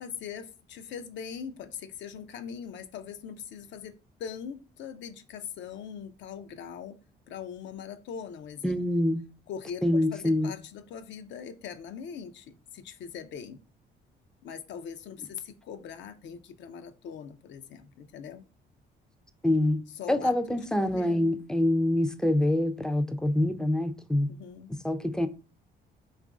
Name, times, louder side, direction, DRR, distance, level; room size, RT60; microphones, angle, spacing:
voice 1, 0.0-7.0 7.3-8.8 9.5-13.6 14.4-18.4 20.0-20.3 20.8-21.3 24.3-24.7, left 7 dB, 70° left, 0.5 m, -41 dB
voice 2, 8.6-9.2 9.8-10.5 19.4-19.8 20.1-24.3 24.8-25.3, left 1 dB, 5° left, 0.4 m, -25 dB
3.0 x 2.5 x 3.5 m
cardioid pair, 85°, 20 cm